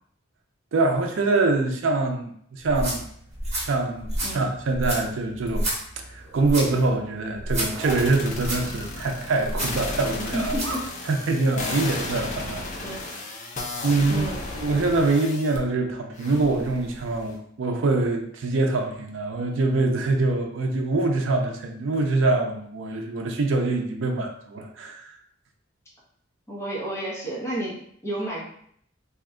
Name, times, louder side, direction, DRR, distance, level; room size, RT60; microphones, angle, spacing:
voice 1, 0.7-3.1 3.6-5.7 6.0-10.6 11.0-12.9 13.8-14.3 14.5-25.2, right 3 dB, 75° right, 3 dB, 0.5 m, -24 dB
sound 1, 2.6-10.8, right 1 dB, 35° right, 1.1 m, -32 dB
Zipper (clothing), 6.2-6.9 7.5-8.1 9.2-9.9 10.3-10.8, right 3 dB, 60° right, 1.1 m, -39 dB
sound 2, 7.8-15.6 16.2-17.4, left 2 dB, 40° left, 0.5 m, -34 dB
voice 2, 10.3-10.9 12.8-13.0 14.1-14.4 26.5-28.4, right 1 dB, 15° left, -6 dB, 0.9 m, -31 dB
2.7 x 2.2 x 3.6 m, 0.66 s
head